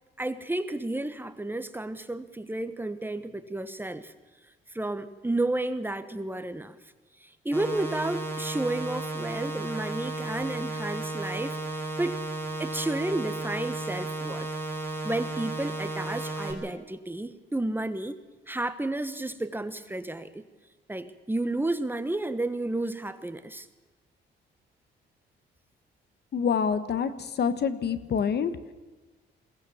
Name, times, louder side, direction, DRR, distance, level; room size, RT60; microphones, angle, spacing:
voice 1, 0.2-4.1 4.7-6.8 7.2-12.2 12.6-14.5 15.0-18.2 18.5-20.5 20.9-23.7, right 2 dB, 10° right, 11 dB, 1.3 m, -32 dB
sound 1, 7.5-16.5, right 2 dB, 10° left, 5.1 m, -34 dB
voice 2, 26.3-27.1 27.4-28.5, left 6 dB, 55° left, 13 dB, 1.3 m, -26 dB
22.0 x 17.5 x 7.1 m, 1.2 s
cardioid pair, 90°, 20 cm